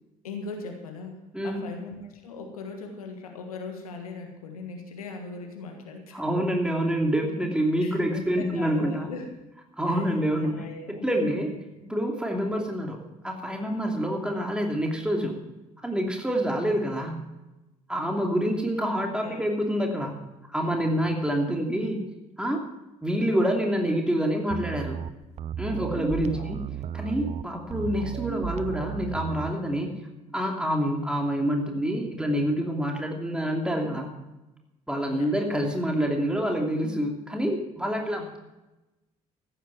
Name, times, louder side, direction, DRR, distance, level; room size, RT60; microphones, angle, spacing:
voice 1, 0.2-6.2 7.8-9.3 9.9-11.4 19.2-19.6 20.7-20.9 21.5-21.6 26.2-26.6 35.1-35.7 38.2-38.4, left 4 dB, 80° left, 3 dB, 1.6 m, -40 dB
voice 2, 6.1-9.1 9.8-11.5 11.8-13.0 13.2-15.4 15.8-17.2 17.9-20.2 20.5-22.0 22.4-22.6 23.0-25.0 25.6-26.6 26.9-30.0 30.3-34.1 34.9-38.4, equal, 5° right, 1 dB, 2.9 m, -27 dB
sound 1, 24.5-29.5, right 9 dB, 40° right, 0.5 m, -34 dB
14.5 x 9.0 x 6.2 m, 1.0 s
figure-of-eight pair, 50°, 18 cm